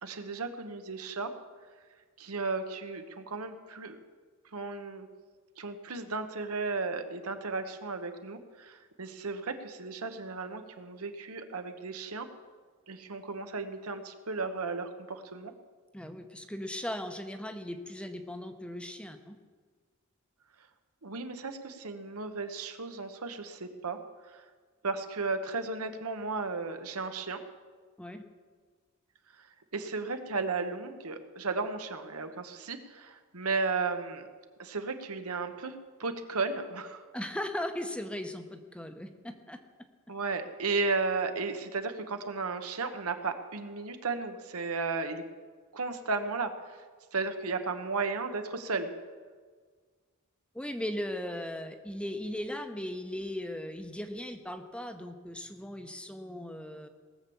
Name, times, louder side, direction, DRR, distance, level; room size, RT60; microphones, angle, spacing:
voice 1, 0.0-1.3 2.2-4.0 4.5-5.1 5.6-12.3 12.9-15.5 21.0-24.0 24.3-24.4 24.8-27.4 29.7-34.3 34.6-37.0 40.1-45.2 45.7-46.8 47.1-48.9, right 4 dB, 90° right, 7 dB, 1.2 m, -34 dB
voice 2, 15.9-19.4 28.0-28.2 37.1-39.6 50.5-56.9, left 1 dB, 5° left, 7 dB, 0.8 m, -38 dB
19.0 x 7.1 x 7.1 m, 1.6 s
head